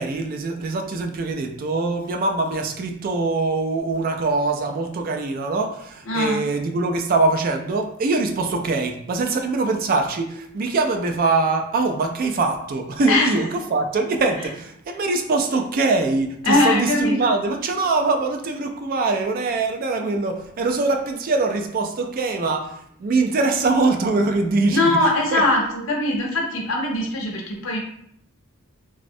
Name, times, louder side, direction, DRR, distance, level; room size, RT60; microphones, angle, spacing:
voice 1, 0.0-25.0 25.3-25.4, right 3 dB, 45° right, 4 dB, 0.3 m, -23 dB
voice 2, 6.1-6.4 13.1-13.5 16.4-17.3 24.7-27.8, left 1 dB, 70° left, -1 dB, 0.7 m, -21 dB
3.4 x 2.0 x 2.6 m, 0.71 s
head